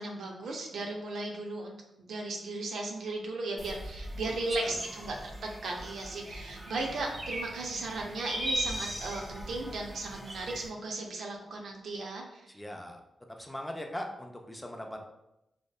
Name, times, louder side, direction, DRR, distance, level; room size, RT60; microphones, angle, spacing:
voice 1, 0.0-12.5, right 2 dB, 80° right, 1 dB, 0.4 m, -36 dB
sound 1, 3.6-10.7, right 1 dB, 35° right, 0.6 m, -39 dB
voice 2, 12.5-13.0 13.4-15.1, left 1 dB, 10° left, 2 dB, 0.3 m, -40 dB
2.7 x 2.1 x 2.2 m, 0.87 s
cardioid pair, 75°, 0 cm